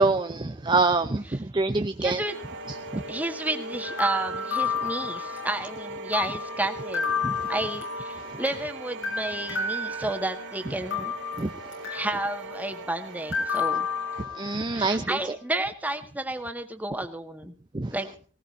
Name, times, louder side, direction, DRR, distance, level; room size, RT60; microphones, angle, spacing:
voice 1, 0.0-1.2 1.5-2.2 2.9-3.0 7.2-7.3 11.4-11.5 14.4-15.1 17.7-17.9, right 3 dB, 25° right, 9 dB, 0.6 m, -24 dB
voice 2, 2.0-2.4 3.1-7.2 7.5-11.1 11.8-13.9 14.7-17.5 17.9-18.1, right 1 dB, 10° right, 5 dB, 1.8 m, -31 dB
sound 1, 2.2-14.2, right 2 dB, 85° right, 2.3 m, -40 dB
sound 2, 3.8-5.7 6.1-8.7 9.0-10.5 10.9-12.3 13.3-14.7, left 4 dB, 80° left, 7.3 m, -31 dB
19.0 x 18.5 x 2.7 m, 0.40 s
head